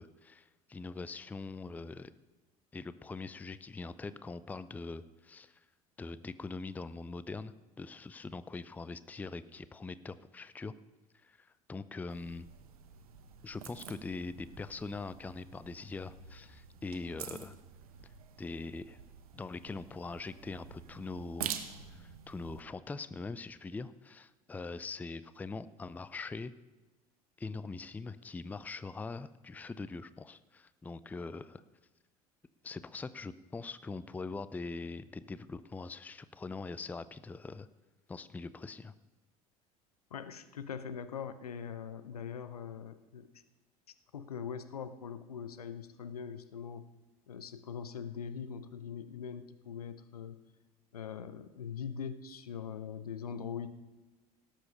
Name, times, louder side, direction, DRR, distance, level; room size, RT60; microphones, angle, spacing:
voice 1, 0.0-2.1 2.7-5.6 6.0-10.7 11.2-12.5 13.4-17.6 18.4-19.0 19.3-21.6 21.9-26.5 27.4-31.6 32.6-37.7 38.1-38.9, left 3 dB, 10° left, 16 dB, 0.4 m, -42 dB
sound 1, 12.1-22.6, right 8 dB, 70° right, 1.0 m, -47 dB
voice 2, 40.1-43.3 44.1-46.8 47.3-50.4 50.9-53.7, left 7 dB, 75° left, 12 dB, 0.7 m, -42 dB
17.5 x 7.4 x 5.4 m, 1.1 s
figure-of-eight pair, 65°, 19 cm